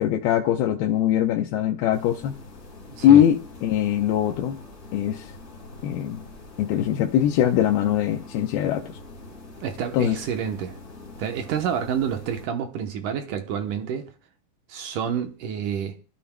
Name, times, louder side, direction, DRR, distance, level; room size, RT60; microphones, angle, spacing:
voice 1, 0.0-2.3 3.0-4.6 4.9-5.3 5.8-6.2 6.6-9.0 9.9-10.2, left 11 dB, 80° left, 2.6 m, -21 dB
sound 1, 1.9-12.5, left 2 dB, 25° left, 1.8 m, -44 dB
voice 2, 2.9-3.2 9.6-10.8 11.2-14.1 14.7-16.0, right 8 dB, 70° right, 2.2 m, -29 dB
28.0 x 12.5 x 2.2 m
omnidirectional pair, 4.4 m